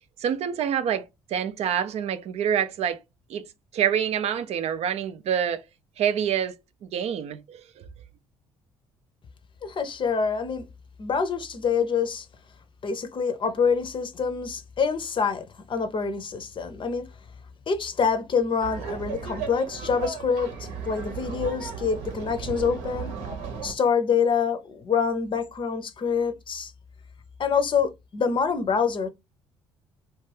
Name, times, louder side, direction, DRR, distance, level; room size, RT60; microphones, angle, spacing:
voice 1, 0.2-3.0 3.3-3.4 3.7-5.6 6.0-6.6 6.8-7.9, right 8 dB, 50° right, 0.4 m, -27 dB
voice 2, 9.6-10.7 11.0-12.3 12.8-17.1 17.7-23.1 23.6-26.7 27.4-29.1, left 6 dB, 35° left, 0.6 m, -26 dB
Laughter, 18.6-23.7, right 6 dB, 70° right, 0.9 m, -35 dB
2.4 x 2.2 x 3.3 m
hypercardioid pair, 50°, 14 cm